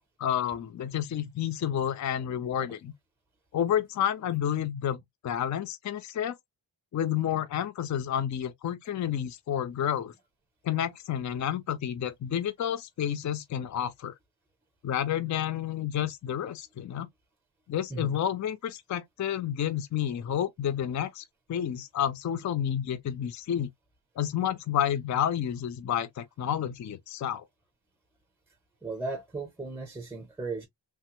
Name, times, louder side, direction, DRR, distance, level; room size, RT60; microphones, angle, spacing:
voice 1, 0.2-2.9 3.5-6.4 6.9-10.1 10.6-14.1 14.8-17.1 17.7-23.7 24.2-27.4, left 10 dB, 40° left, 0.4 m, -30 dB
voice 2, 28.8-30.7, right 3 dB, 5° right, 0.6 m, -36 dB
3.3 x 2.0 x 2.8 m
wide cardioid pair, 160°, 45 cm